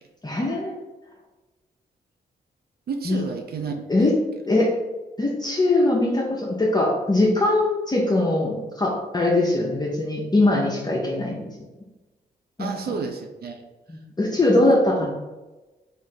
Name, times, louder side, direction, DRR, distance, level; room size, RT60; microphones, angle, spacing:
voice 1, 0.2-0.7 3.0-3.2 3.9-4.2 4.5-4.8 5.2-11.5 12.6-12.9 13.9-15.1, left 2 dB, 20° left, -3 dB, 0.8 m, -21 dB
voice 2, 2.9-3.7 12.6-13.6 14.4-15.1, right 5 dB, 55° right, 4 dB, 0.5 m, -31 dB
3.1 x 2.6 x 3.9 m, 1.1 s
hypercardioid pair, 40°, 19 cm